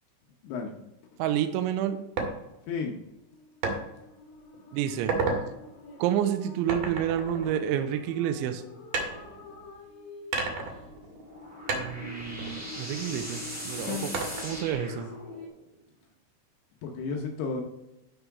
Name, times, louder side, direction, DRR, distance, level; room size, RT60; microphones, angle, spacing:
voice 1, 1.2-2.0 4.7-5.1 6.0-8.6 11.7-14.1 14.4-15.1, right 10 dB, 80° right, 7 dB, 3.0 m, -29 dB
sound 1, 2.2-2.3 3.6-3.8 4.3-4.6 4.9-5.4 6.7-8.2 8.9-9.8 10.3-11.4 11.7-13.3 14.1-14.7, right 4 dB, 60° right, 3.0 m, -32 dB
sound 2, 2.9-15.5, left 3 dB, 55° left, 2.5 m, -47 dB
sound 3, 11.1-15.6, equal, 5° right, 0.8 m, -40 dB
voice 2, 16.8-17.6, left 5 dB, 75° left, 2 dB, 2.6 m, -32 dB
11.5 x 5.5 x 4.7 m, 0.90 s
omnidirectional pair, 5.5 m